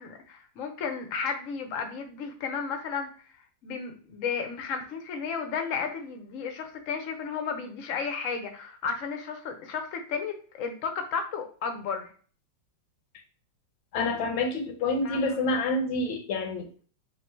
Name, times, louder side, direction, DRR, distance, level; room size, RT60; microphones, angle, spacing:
voice 1, 0.0-3.1 3.6-12.1 15.0-15.4, left 5 dB, 65° left, 5 dB, 0.8 m, -33 dB
voice 2, 13.9-16.7, left 2 dB, 85° left, 5 dB, 1.5 m, -28 dB
3.7 x 2.5 x 4.3 m, 0.42 s
omnidirectional pair, 2.1 m